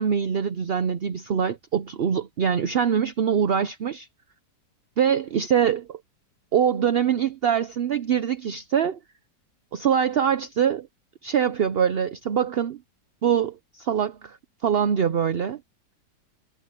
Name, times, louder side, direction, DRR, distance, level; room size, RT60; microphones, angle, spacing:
voice 1, 0.0-4.1 5.0-6.0 6.5-9.0 9.7-10.9 11.2-12.8 13.2-14.4 14.6-15.6, right 8 dB, 55° right, 0.6 m, -23 dB
omnidirectional pair, 1.8 m